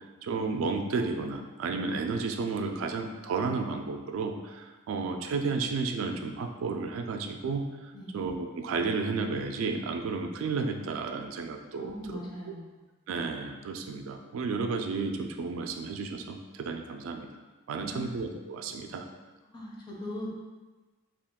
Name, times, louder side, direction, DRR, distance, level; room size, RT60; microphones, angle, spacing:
voice 1, 0.2-12.2 13.1-17.3 17.7-19.1, right 4 dB, 85° right, 5 dB, 0.3 m, -32 dB
voice 2, 11.8-12.8 17.7-18.1 19.4-20.3, left 1 dB, 20° left, -4 dB, 0.5 m, -40 dB
2.4 x 2.3 x 3.5 m, 1.2 s
head